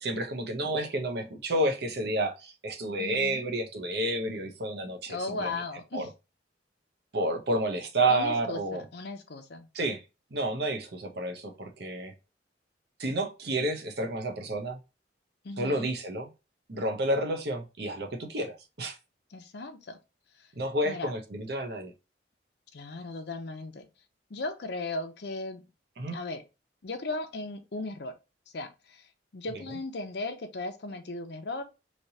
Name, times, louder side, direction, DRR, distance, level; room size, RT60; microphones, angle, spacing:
voice 1, 0.0-5.6 5.9-6.1 7.1-8.8 9.7-10.0 10.3-12.1 13.0-14.8 15.6-16.3 16.7-19.0 20.6-21.9 26.0-26.2, right 1 dB, 60° right, 0.8 m, -30 dB
voice 2, 3.0-3.5 5.1-6.1 8.1-9.7 15.4-15.9 19.3-20.0 20.4-20.5 20.8-21.1 22.7-23.9 24.3-25.6 26.1-26.4 26.8-28.1 28.5-31.6, left 2 dB, 60° left, 0.6 m, -37 dB
3.2 x 2.8 x 2.7 m
head